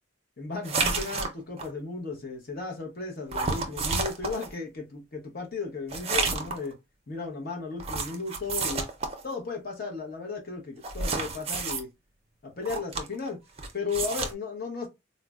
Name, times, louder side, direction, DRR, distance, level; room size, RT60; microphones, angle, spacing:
voice 1, 0.4-6.8 7.1-8.9 9.2-11.9 12.4-13.4 13.7-14.9, left 4 dB, 45° left, 0.8 m, -35 dB
sound 1, 0.6-1.7 3.3-4.5 5.9-6.7 7.8-9.2 10.8-11.8 12.6-13.3 13.6-14.3, right 4 dB, 30° right, 0.5 m, -30 dB
4.0 x 2.0 x 2.3 m
head